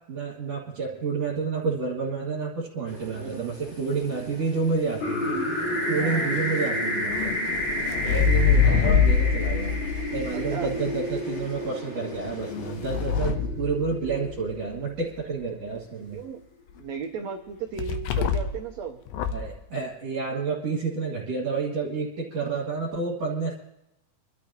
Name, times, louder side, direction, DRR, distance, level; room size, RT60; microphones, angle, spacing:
voice 1, 0.1-5.3 5.9-7.4 8.0-9.8 10.1-16.2 19.3-23.5, right 4 dB, 50° right, -4 dB, 3.1 m, -29 dB
sound 1, 2.8-13.3, left 2 dB, 35° left, 1.1 m, -45 dB
voice 2, 3.1-3.5 5.1-5.5 6.0-6.3 10.3-10.7 16.1-16.4 16.8-19.0, right 7 dB, 85° right, 4 dB, 1.5 m, -36 dB
sound 2, 5.0-14.9, left 1 dB, 65° left, 4.8 m, -31 dB
sound 3, 7.1-11.2 12.2-14.5 17.8-18.7 19.1-19.5, left 6 dB, 80° left, 2.6 m, -25 dB
28.0 x 12.5 x 2.9 m, 0.88 s
omnidirectional pair, 4.2 m